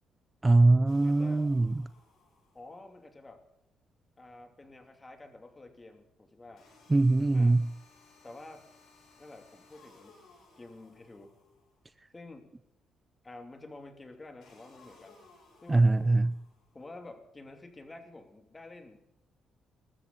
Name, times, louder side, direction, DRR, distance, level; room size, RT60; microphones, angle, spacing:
voice 1, 0.4-1.8 6.9-7.7 15.7-16.3, right 2 dB, 20° right, 15 dB, 0.4 m, -22 dB
sound 1, 0.9-2.8 6.6-11.8 14.4-16.8, left 3 dB, 75° left, 6.9 m, -60 dB
voice 2, 1.0-1.5 2.5-3.4 4.2-6.6 7.3-7.6 8.2-8.7 9.2-10.2 10.6-11.3 12.1-12.5 13.2-15.2 15.6-16.2 16.7-19.0, left 2 dB, 20° left, 5 dB, 2.9 m, -49 dB
20.5 x 13.0 x 4.1 m, 0.86 s
cardioid pair, 90°, 0 cm